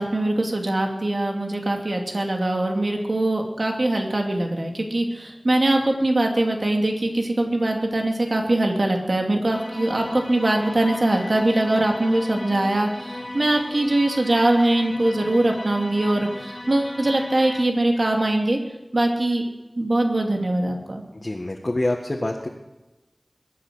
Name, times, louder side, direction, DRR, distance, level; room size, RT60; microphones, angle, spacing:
voice 1, 0.0-18.6 18.9-19.4 19.7-21.0, right 1 dB, 65° right, 2 dB, 2.6 m, -22 dB
sound 1, 9.5-17.7, left 1 dB, 30° left, 1.2 m, -36 dB
voice 2, 21.2-22.5, left 1 dB, 45° left, 0 dB, 1.7 m, -26 dB
22.0 x 9.7 x 6.3 m, 1.1 s
wide cardioid pair, 50°, 0 cm